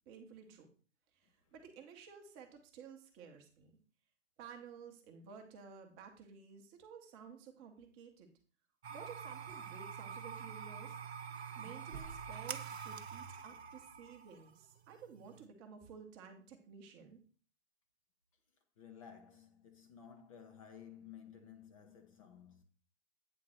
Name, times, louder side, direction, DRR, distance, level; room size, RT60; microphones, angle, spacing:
voice 1, 0.1-0.7 1.1-3.7 4.4-8.3 8.9-11.0 11.5-17.2, right 6 dB, 20° right, 0.9 m, -54 dB
sound 1, 8.8-15.5, right 6 dB, 55° right, 0.8 m, -46 dB
voice 2, 18.8-22.6, left 8 dB, 25° left, 0.7 m, -55 dB
8.7 x 3.8 x 6.3 m
figure-of-eight pair, 125°, 38 cm